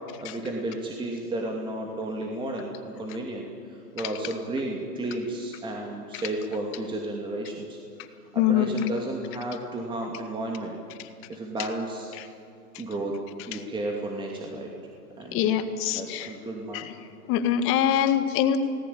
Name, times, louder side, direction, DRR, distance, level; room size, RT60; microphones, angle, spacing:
voice 1, 0.2-7.8 8.3-10.7 11.3-12.2 12.8-13.1 13.5-14.7 15.2-15.5 15.9-16.9, right 1 dB, 10° right, 0 dB, 2.7 m, -33 dB
voice 2, 8.4-8.9 12.2-12.3 12.7-12.8 13.5-13.6 15.3-16.3 16.7-16.9 17.3-18.6, left 10 dB, 25° left, 9 dB, 1.8 m, -24 dB
29.5 x 19.0 x 8.7 m, 2.4 s
hypercardioid pair, 130°, 47 cm